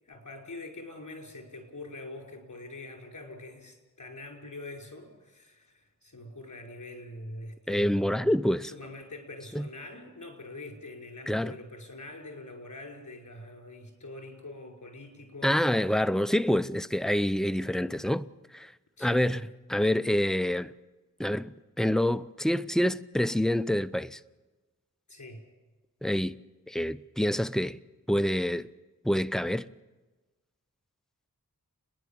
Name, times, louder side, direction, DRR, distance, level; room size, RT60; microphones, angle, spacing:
voice 1, 0.1-15.6 19.0-19.5 25.1-25.5, left 1 dB, 55° left, 5.4 m, -44 dB
voice 2, 7.7-8.7 9.5-9.7 11.3-11.5 15.4-18.7 19.0-19.4 19.7-20.7 21.2-24.2 26.0-26.4 26.7-27.8 28.1-28.7 29.0-29.7, equal, ahead, 0.7 m, -27 dB
29.5 x 10.5 x 8.8 m
wide cardioid pair, 40°, 35 cm